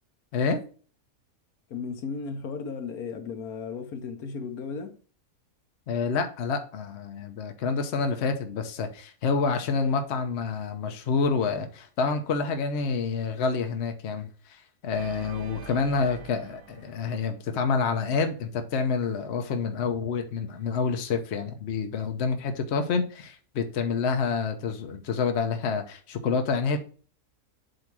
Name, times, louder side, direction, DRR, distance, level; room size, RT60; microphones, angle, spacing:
voice 1, 0.3-0.6 5.9-26.8, left 5 dB, 50° left, 1.0 m, -28 dB
voice 2, 1.7-5.0, left 5 dB, 70° left, 1.3 m, -35 dB
Organ, 14.9-18.0, right 6 dB, 85° right, 1.4 m, -46 dB
7.8 x 2.8 x 6.0 m
omnidirectional pair, 1.7 m